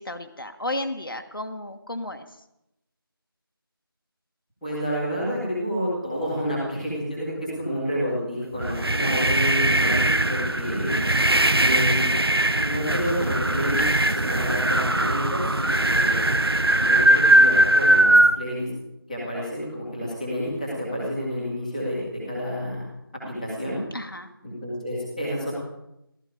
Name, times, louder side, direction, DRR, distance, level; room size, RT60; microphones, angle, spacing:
voice 1, 0.0-2.4 23.9-24.3, left 1 dB, 65° left, 6 dB, 1.6 m, -33 dB
voice 2, 4.6-11.0 11.6-12.1 12.6-16.3 16.8-18.7 19.1-22.9 23.4-23.8 24.4-25.5, equal, ahead, -19 dB, 1.7 m, -29 dB
sound 1, 8.6-18.3, right 1 dB, 90° right, 1.0 m, -20 dB
sound 2, 10.7-11.7 12.8-14.2, left 1 dB, 45° left, 1.4 m, -39 dB
15.0 x 14.0 x 5.1 m, 0.84 s
figure-of-eight pair, 175°, 13 cm